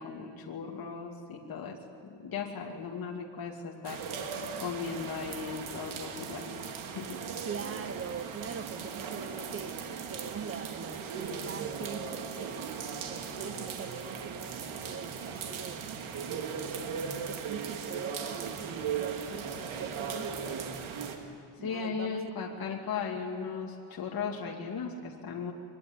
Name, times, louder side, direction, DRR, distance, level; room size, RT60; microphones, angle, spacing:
voice 1, 0.0-1.8 2.0-4.0 4.6-6.5 6.9-7.2 21.6-25.5, left 6 dB, 50° left, 0 dB, 2.8 m, -37 dB
sound 1, 3.8-21.2, right 6 dB, 90° right, 2.8 m, -38 dB
voice 2, 7.4-12.7 13.1-15.8 16.3-20.6 21.6-22.3, right 7 dB, 30° right, 13 dB, 1.1 m, -43 dB
24.0 x 21.0 x 9.9 m, 2.4 s
cardioid pair, 125°, 46 cm